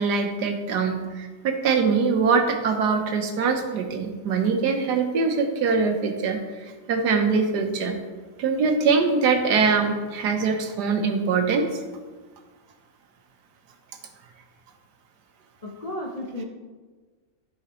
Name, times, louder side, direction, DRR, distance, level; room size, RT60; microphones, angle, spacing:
voice 1, 0.0-8.0 8.4-11.7, right 5 dB, 65° right, 5 dB, 1.4 m, -23 dB
voice 2, 15.6-16.4, left 1 dB, 60° left, -2 dB, 0.3 m, -33 dB
13.0 x 5.0 x 3.1 m, 1.3 s
omnidirectional pair, 2.0 m